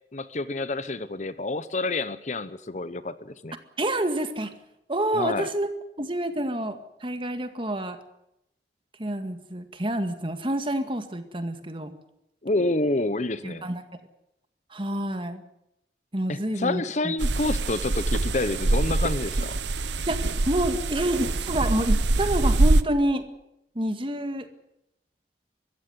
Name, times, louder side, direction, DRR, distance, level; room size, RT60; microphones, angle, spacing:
voice 1, 0.1-3.6 5.1-5.5 12.4-13.7 16.3-19.6, left 2 dB, 40° left, 14 dB, 0.9 m, -28 dB
voice 2, 3.8-4.5 4.9-5.7 6.0-8.0 9.0-11.9 13.4-13.8 14.7-15.4 16.1-17.1 20.1-23.3 23.8-24.5, right 1 dB, 30° right, 8 dB, 2.0 m, -28 dB
sound 1, 17.2-22.8, right 2 dB, 90° right, 1.0 m, -24 dB
23.5 x 15.0 x 9.6 m, 0.83 s
head